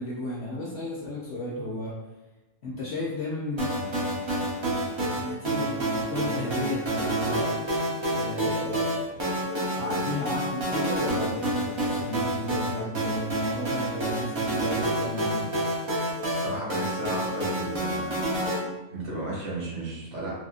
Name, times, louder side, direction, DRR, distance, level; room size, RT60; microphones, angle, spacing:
voice 1, 0.0-2.0 2.6-3.9 5.1-7.6 8.1-9.2 9.7-15.6, left 2 dB, 60° left, -6 dB, 0.8 m, -34 dB
sound 1, 3.6-18.6, right 1 dB, 35° right, 0.5 m, -28 dB
voice 2, 16.3-18.1 18.9-20.3, right 1 dB, 55° right, -7 dB, 1.3 m, -34 dB
3.4 x 2.5 x 2.4 m, 1.1 s
omnidirectional pair, 1.5 m